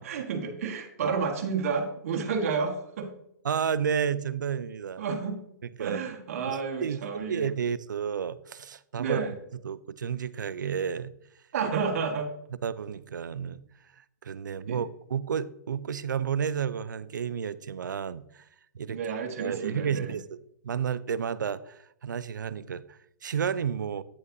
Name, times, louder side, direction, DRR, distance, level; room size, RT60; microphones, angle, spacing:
voice 1, 0.0-3.1 5.0-5.4 5.8-7.5 9.0-9.3 11.5-12.3 14.7-14.8 18.9-20.1, right 5 dB, 50° right, 1.5 m, -30 dB
voice 2, 3.4-5.0 5.8-6.0 6.4-7.0 7.3-9.3 9.6-11.1 12.6-13.6 14.2-18.4 18.7-19.0 19.4-20.4 20.6-24.0, right 7 dB, 90° right, 0.5 m, -31 dB
9.5 x 7.7 x 2.7 m
hypercardioid pair, 155°, 10 cm